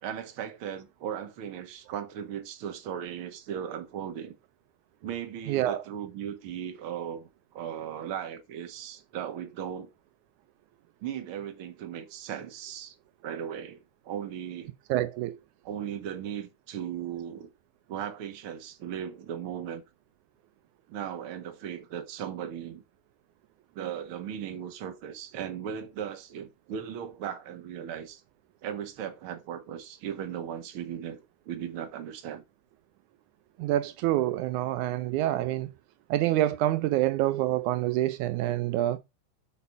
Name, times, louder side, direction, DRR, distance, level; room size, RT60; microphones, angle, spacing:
voice 1, 0.0-4.3 5.0-9.9 11.0-13.0 13.2-14.7 15.6-17.5 17.9-19.8 20.9-22.8 23.8-28.2 28.6-32.4 35.3-35.5, right 9 dB, 50° right, 1.9 m, -37 dB
voice 2, 5.5-5.8 14.9-15.4 33.6-35.7 36.1-39.0, right 14 dB, 80° right, 2.1 m, -27 dB
8.5 x 5.0 x 7.1 m
omnidirectional pair, 3.5 m